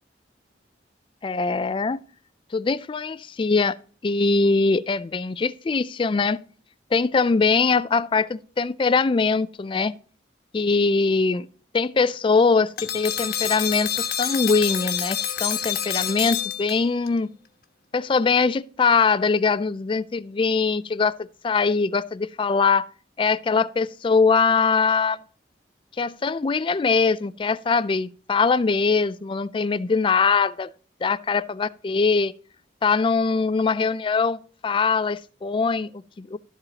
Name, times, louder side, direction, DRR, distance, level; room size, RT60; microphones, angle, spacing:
voice 1, 1.2-2.0 2.5-3.8 4.0-6.4 6.9-9.9 10.5-11.5 11.7-17.3 17.9-22.9 23.2-25.2 26.0-30.7 31.0-32.3 32.8-36.4, left 4 dB, 30° left, 0.3 m, -22 dB
sound 1, 12.8-17.1, left 9 dB, 55° left, 1.1 m, -27 dB
13.0 x 7.8 x 2.8 m
head